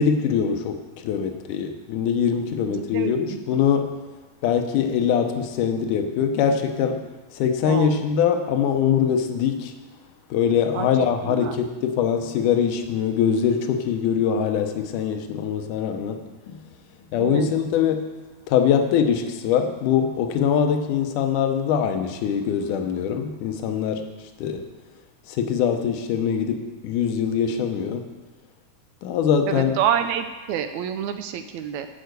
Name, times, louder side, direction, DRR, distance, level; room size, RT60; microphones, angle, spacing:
voice 1, 0.0-4.0 4.4-7.1 7.3-9.8 10.3-16.6 17.1-24.7 25.3-28.2 29.0-29.8, left 7 dB, 75° left, 6 dB, 2.4 m, -23 dB
voice 2, 2.6-3.4 7.6-8.0 10.7-11.6 17.2-17.5 29.5-31.9, right 9 dB, 80° right, 8 dB, 1.7 m, -28 dB
11.5 x 4.9 x 8.0 m, 1.3 s
omnidirectional pair, 3.8 m